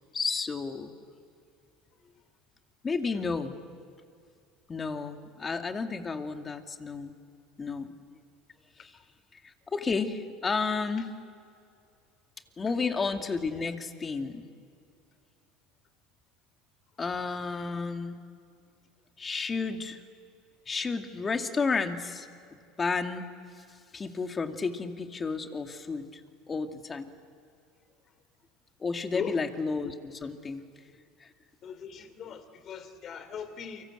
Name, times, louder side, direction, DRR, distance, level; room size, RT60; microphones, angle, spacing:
voice 1, 0.1-0.9 2.8-3.6 4.7-7.1 7.6-7.9 8.8-8.9 9.3-11.1 12.6-14.5 17.0-18.2 19.2-20.0 20.7-23.3 23.6-23.7 23.9-26.2 26.5-27.1 28.8-30.6 31.2-31.3, left 4 dB, 25° left, 5 dB, 2.4 m, -32 dB
voice 2, 29.1-29.4 31.6-33.8, left 7 dB, 45° left, 12 dB, 3.1 m, -40 dB
29.5 x 25.0 x 7.9 m, 2.4 s
supercardioid pair, 95°, 0 cm